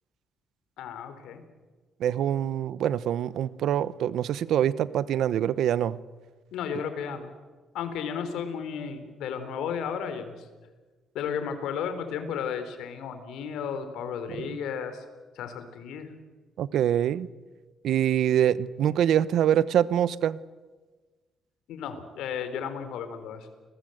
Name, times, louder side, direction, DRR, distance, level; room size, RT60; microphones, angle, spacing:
voice 1, 0.8-1.4 6.5-7.3 7.7-10.5 11.1-15.0 15.4-16.1 21.7-23.5, left 7 dB, 85° left, 9 dB, 4.0 m, -34 dB
voice 2, 2.0-6.0 16.6-17.3 17.8-20.4, right 10 dB, 75° right, 17 dB, 1.0 m, -24 dB
30.0 x 21.0 x 8.0 m, 1.3 s
cardioid pair, 90°, 0 cm